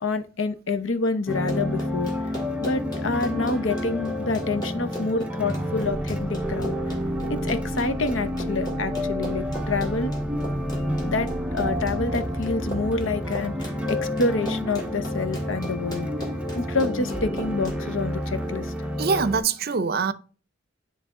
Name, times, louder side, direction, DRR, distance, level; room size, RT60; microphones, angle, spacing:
voice 1, 0.0-2.1 2.6-6.8 7.3-10.1 11.0-16.1 16.5-18.7, left 3 dB, 70° left, 0.7 m, -27 dB
Run, 1.3-17.8, right 1 dB, 20° left, 2.4 m, -38 dB
sound 1, 1.3-19.4, equal, 5° right, 0.6 m, -29 dB
voice 2, 19.0-20.1, right 5 dB, 50° right, 0.5 m, -24 dB
10.0 x 3.4 x 3.7 m
head